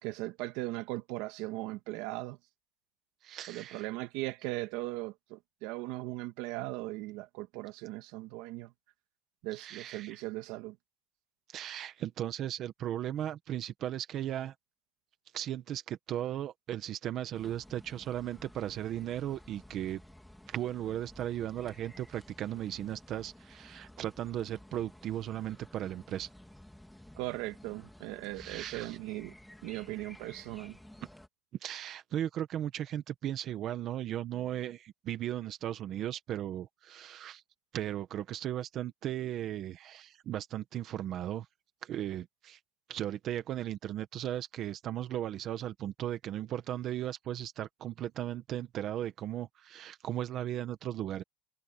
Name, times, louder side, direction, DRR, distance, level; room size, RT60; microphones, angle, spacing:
voice 1, 0.0-2.4 3.5-8.7 9.4-10.8 27.2-29.3 29.6-30.8, right 19 dB, 65° right, 1.9 m, -38 dB
voice 2, 3.2-3.9 9.5-10.2 11.5-14.5 15.3-20.0 20.5-26.3 28.3-29.0 31.6-37.4 37.7-41.5 41.8-42.6 42.9-51.2, right 11 dB, 40° right, 1.3 m, -36 dB
sound 1, 17.3-31.3, left 1 dB, 5° left, 3.3 m, -54 dB
cardioid pair, 160°, 0 cm